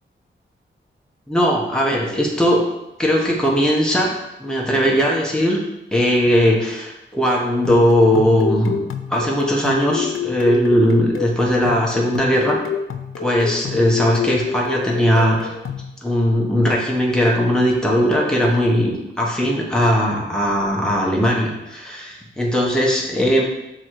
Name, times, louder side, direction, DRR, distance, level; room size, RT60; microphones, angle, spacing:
voice 1, 1.3-2.6 3.0-4.1 4.4-5.6 5.9-8.8 9.1-12.6 13.2-15.5 16.0-18.9 19.2-23.4, equal, 5° left, -3 dB, 1.1 m, -18 dB
sound 1, 7.4-15.9, left 7 dB, 85° left, 0.5 m, -29 dB
6.1 x 3.8 x 4.7 m, 0.95 s
wide cardioid pair, 170°, 21 cm